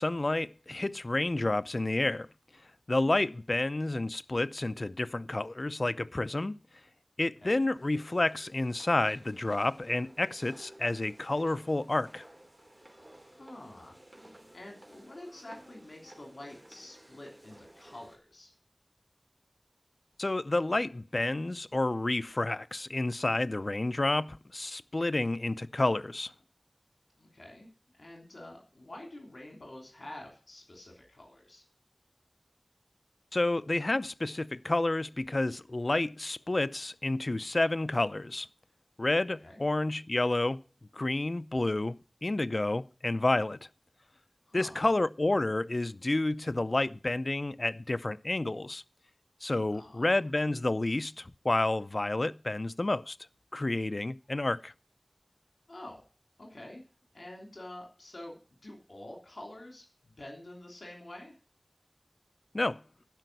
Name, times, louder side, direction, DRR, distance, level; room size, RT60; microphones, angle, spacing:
voice 1, 0.0-2.3 2.9-6.6 7.2-12.3 20.2-26.3 33.3-38.5 39.0-40.6 40.9-43.7 44.5-48.8 49.4-53.2 53.5-54.7 62.5-62.8, left 2 dB, 60° left, 0.5 m, -30 dB
sound 1, 7.7-18.2, right 1 dB, 35° right, 3.0 m, -55 dB
voice 2, 13.2-14.0 14.5-18.5 27.2-27.7 27.9-31.6 39.4-39.6 44.5-44.8 49.7-50.1 55.7-56.0 56.4-56.8 57.1-58.4 58.6-61.3, left 1 dB, 85° left, 3.1 m, -47 dB
11.5 x 5.4 x 7.9 m
wide cardioid pair, 45°, 0 cm